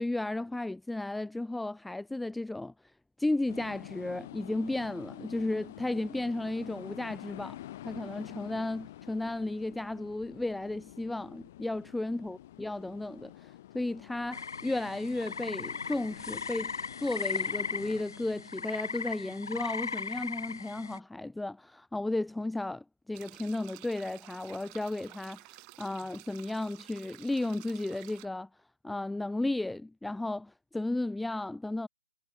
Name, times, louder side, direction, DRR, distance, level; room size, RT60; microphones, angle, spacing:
voice 1, 0.0-2.7 3.2-7.6 7.8-16.7 17.0-25.5 25.8-28.5 28.8-31.9, left 2 dB, ahead, 0.3 m, -34 dB
sound 1, 3.5-18.0, left 14 dB, 35° left, 1.4 m, -48 dB
sound 2, 14.3-21.0, left 5 dB, 75° left, 1.7 m, -37 dB
sound 3, 23.1-28.3, right 35 dB, 25° right, 7.4 m, -52 dB
hypercardioid pair, 155°, 2 cm